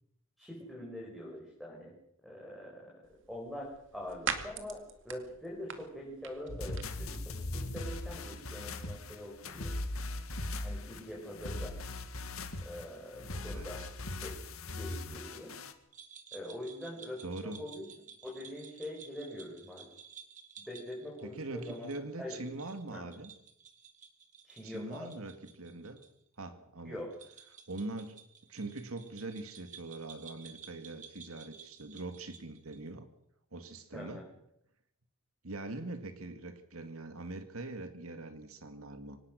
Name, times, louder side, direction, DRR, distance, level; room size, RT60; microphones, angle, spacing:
voice 1, 0.4-1.9 2.2-9.7 10.6-11.7 12.6-13.8 14.1-14.4 14.7-15.6 16.3-17.9 18.2-19.9 20.7-22.4 22.9-23.0 24.4-25.1 26.8-27.1 33.9-34.3, left 1 dB, ahead, -3 dB, 5.4 m, -44 dB
sound 1, 3.0-11.7, right 6 dB, 60° right, 2.3 m, -46 dB
sound 2, 6.5-15.7, left 2 dB, 85° left, 2.0 m, -39 dB
voice 2, 13.4-13.9 17.2-17.6 21.2-23.3 24.6-26.0 26.4-27.0 27.7-28.2 28.5-33.1 33.5-34.2 35.4-39.2, right 2 dB, 90° right, 8 dB, 2.1 m, -42 dB
sound 3, 15.9-26.1 26.3-26.4 27.1-32.9, right 7 dB, 35° right, 2.3 m, -54 dB
24.0 x 19.0 x 6.4 m, 0.76 s
head